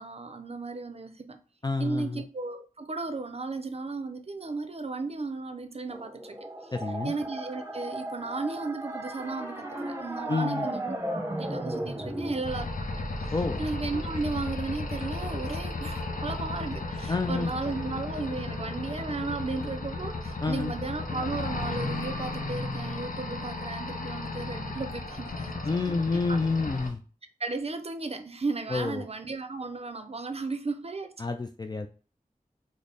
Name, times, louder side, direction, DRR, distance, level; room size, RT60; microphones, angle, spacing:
voice 1, 0.0-1.4 1.8-6.4 6.6-6.7 7.0-12.9 13.2-13.3 13.6-25.5 25.9-26.4 27.4-31.1, right 3 dB, 45° right, 0.5 m, -35 dB
voice 2, 1.6-2.2 6.7-7.1 10.3-10.7 13.3-13.6 17.1-17.5 20.4-20.7 25.6-27.0 28.7-29.1 31.2-31.9, left 3 dB, 30° left, 0.3 m, -29 dB
sound 1, 5.9-12.4, right 1 dB, 15° right, 0.8 m, -35 dB
sound 2, 12.4-26.9, left 2 dB, 65° left, 0.7 m, -34 dB
3.9 x 2.0 x 3.3 m
wide cardioid pair, 45°, 15 cm